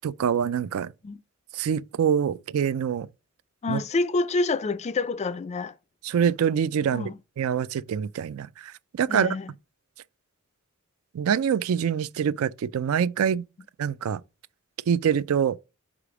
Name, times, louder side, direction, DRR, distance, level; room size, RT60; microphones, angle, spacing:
voice 1, 0.0-0.9 1.5-3.1 3.7-3.8 6.0-7.1 7.4-9.4 11.1-13.4 13.8-14.2 14.9-15.6, right 8 dB, 70° right, 0.3 m, -25 dB
voice 2, 3.6-5.7 6.9-7.2 9.1-9.5, left 3 dB, 30° left, 0.3 m, -27 dB
5.0 x 4.8 x 4.9 m
head